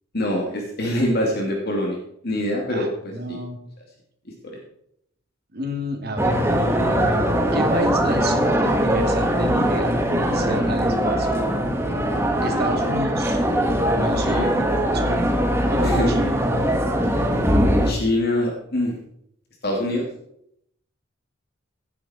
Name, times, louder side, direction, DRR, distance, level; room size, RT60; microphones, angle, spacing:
voice 1, 0.1-2.0 2.2-2.9 3.3-3.4 4.4-4.5 12.3-12.9 14.1-14.4 15.8-16.4 17.8-19.0 19.6-20.1, left 1 dB, 55° left, 0 dB, 2.5 m, -24 dB
voice 2, 2.7-3.6 5.5-6.4 7.5-11.3 12.4-13.4 13.9-16.3, equal, 55° right, 3 dB, 2.5 m, -30 dB
sound 1, 6.2-17.9, equal, 15° right, 1.6 m, -21 dB
16.5 x 8.5 x 4.4 m, 0.74 s
head